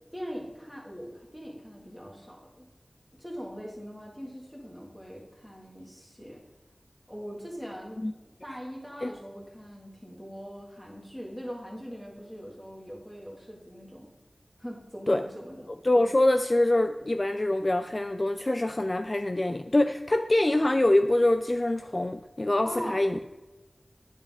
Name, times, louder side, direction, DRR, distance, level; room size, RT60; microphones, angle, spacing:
voice 1, 0.0-2.7 3.2-6.4 7.1-14.1 14.6-15.7 22.6-23.0, equal, 5° left, -2 dB, 2.1 m, -41 dB
voice 2, 15.8-23.3, left 1 dB, 40° left, 8 dB, 0.3 m, -24 dB
10.0 x 6.7 x 3.7 m, 1.1 s
wide cardioid pair, 70°, 0 cm